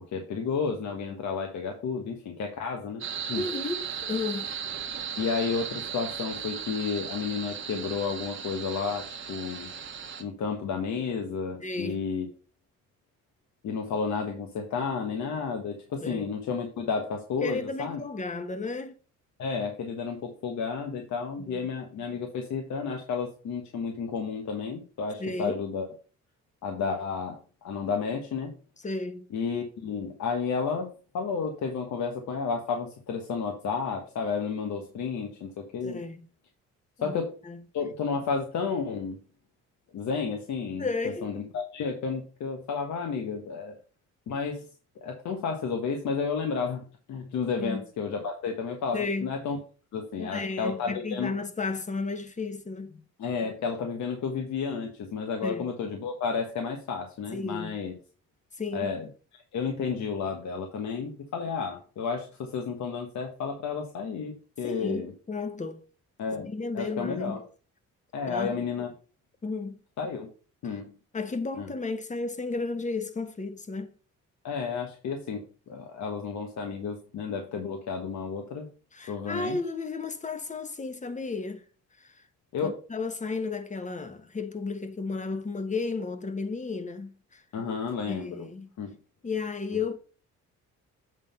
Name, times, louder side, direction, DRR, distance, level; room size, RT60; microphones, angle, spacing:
voice 1, 0.1-3.0 3.3-3.4 5.2-9.7 10.2-12.3 13.6-18.0 19.4-25.9 26.6-28.5 29.3-36.0 37.0-37.3 37.7-39.2 39.9-40.9 41.2-43.8 44.3-44.6 45.0-46.8 47.1-49.6 49.9-51.3 53.2-57.9 58.7-59.1 59.3-65.1 66.2-67.4 68.1-68.9 70.0-70.3 70.6-70.9 71.6-71.7 74.4-78.7 79.1-79.6 82.5-82.8 87.5-88.5 88.8-89.0, left 5 dB, 70° left, 1.5 m, -32 dB
sound 1, 3.0-10.2, right 7 dB, 40° right, 1.3 m, -36 dB
voice 2, 3.4-4.5 11.6-12.0 16.0-16.3 17.4-19.0 21.5-21.6 25.2-25.6 28.8-29.3 35.8-36.2 37.0-37.2 37.4-37.6 40.8-41.3 47.6-47.8 48.9-49.3 50.2-53.0 55.4-55.7 57.3-57.7 58.6-58.9 64.6-65.8 66.5-67.4 68.3-68.9 69.4-69.8 70.6-70.7 71.1-73.9 78.9-81.6 82.0-82.2 82.6-87.4 88.1-88.7 89.2-90.0, left 3 dB, 25° left, 1.2 m, -33 dB
8.2 x 3.8 x 5.5 m
cardioid pair, 90°, 30 cm